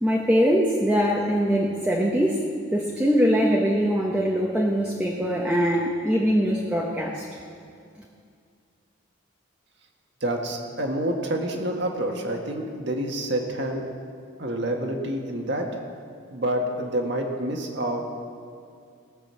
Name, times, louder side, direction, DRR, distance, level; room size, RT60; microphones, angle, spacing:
voice 1, 0.0-2.4 2.7-7.3, equal, 5° right, -3 dB, 1.0 m, -22 dB
voice 2, 10.2-13.8 14.4-15.7 16.3-18.1, right 1 dB, 55° right, 1 dB, 1.7 m, -28 dB
19.0 x 6.4 x 7.5 m, 2.3 s
head